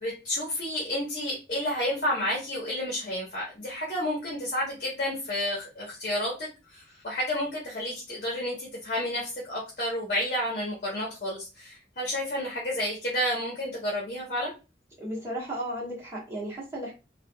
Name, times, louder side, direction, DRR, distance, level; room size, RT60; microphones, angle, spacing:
voice 1, 0.0-14.5, left 1 dB, 45° left, -4 dB, 1.0 m, -31 dB
voice 2, 15.0-16.9, right 1 dB, 15° right, -6 dB, 1.2 m, -34 dB
3.4 x 2.3 x 2.2 m, 0.30 s
head